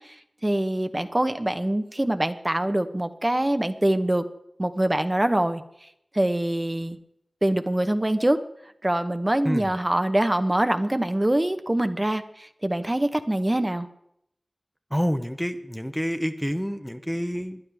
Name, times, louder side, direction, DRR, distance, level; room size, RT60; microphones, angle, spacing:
voice 1, 0.4-4.2 4.6-5.6 6.1-7.0 7.4-8.4 8.8-13.9, right 1 dB, 25° right, 8 dB, 1.0 m, -24 dB
voice 2, 14.9-17.6, equal, 5° left, 8 dB, 0.8 m, -28 dB
20.5 x 11.5 x 3.5 m, 0.74 s
wide cardioid pair, 45°, 0 cm